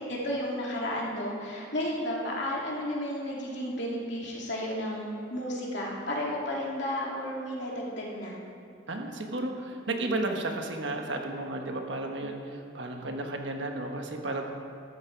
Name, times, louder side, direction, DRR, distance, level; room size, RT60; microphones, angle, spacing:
voice 1, 0.1-8.3, left 1 dB, 60° left, -3 dB, 2.8 m, -33 dB
voice 2, 8.9-14.5, right 2 dB, 65° right, 3 dB, 1.4 m, -33 dB
13.0 x 12.5 x 4.7 m, 2.5 s
head